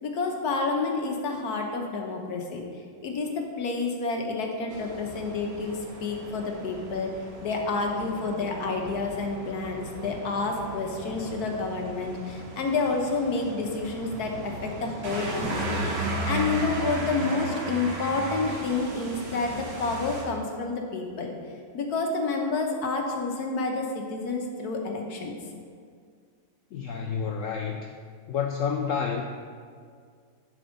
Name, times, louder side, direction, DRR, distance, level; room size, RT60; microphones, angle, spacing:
voice 1, 0.0-2.6 3.0-7.1 7.4-21.3 21.7-25.4, left 3 dB, 65° left, 2 dB, 1.4 m, -29 dB
sound 1, 4.7-20.2, right 2 dB, 75° right, 1.9 m, -35 dB
voice 2, 26.7-27.9 28.3-29.2, left 6 dB, 80° left, 3 dB, 0.7 m, -29 dB
10.5 x 4.3 x 5.2 m, 2.1 s
omnidirectional pair, 1.9 m